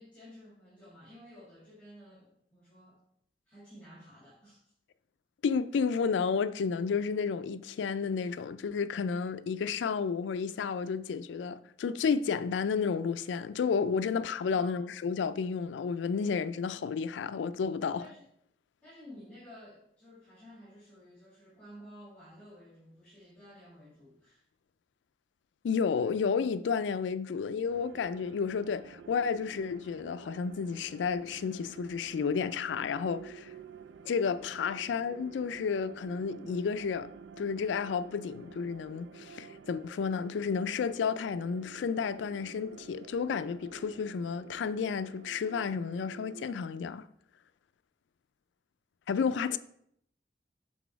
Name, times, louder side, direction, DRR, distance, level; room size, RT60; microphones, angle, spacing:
voice 1, 0.0-3.0 3.5-4.7 14.5-14.9 18.0-18.3 18.8-24.4 34.6-34.8, equal, 10° left, 2.1 m, -53 dB
voice 2, 5.4-18.1 25.6-33.5 34.1-37.1 37.4-47.1 49.1-49.6, left 6 dB, 90° left, 0.3 m, -31 dB
sound 1, 27.7-46.6, right 6 dB, 80° right, 0.3 m, -51 dB
6.0 x 3.9 x 4.6 m
head